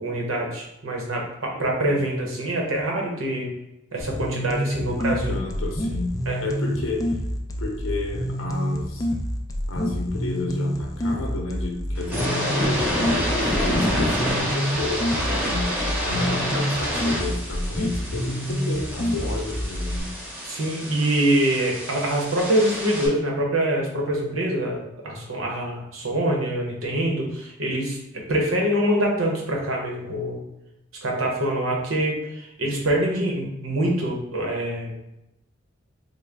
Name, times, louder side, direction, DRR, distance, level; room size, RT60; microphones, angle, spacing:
voice 1, 0.0-3.5 3.9-5.3 6.3-6.4 20.4-30.4 31.0-35.0, right 1 dB, 85° right, -1 dB, 0.9 m, -25 dB
voice 2, 1.5-1.9 4.8-4.9 5.3-6.1 6.4-7.0 7.6-9.1 9.7-20.1, left 2 dB, 75° left, 1 dB, 0.7 m, -31 dB
sound 1, 4.0-20.0, equal, 15° left, 0.4 m, -28 dB
sound 2, 11.9-23.1, equal, 10° right, 0.8 m, -28 dB
3.8 x 2.1 x 3.4 m, 0.88 s
head